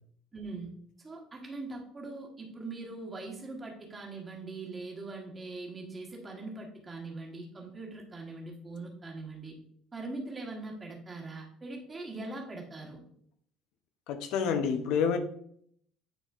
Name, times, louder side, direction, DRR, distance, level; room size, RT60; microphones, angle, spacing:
voice 1, 0.3-0.7 1.0-9.5 9.9-13.0, right 3 dB, 15° right, 1.3 m, -41 dB
voice 2, 14.1-15.2, left 6 dB, 70° left, 0.6 m, -28 dB
9.3 x 4.1 x 2.4 m
cardioid pair, 165°, 0 cm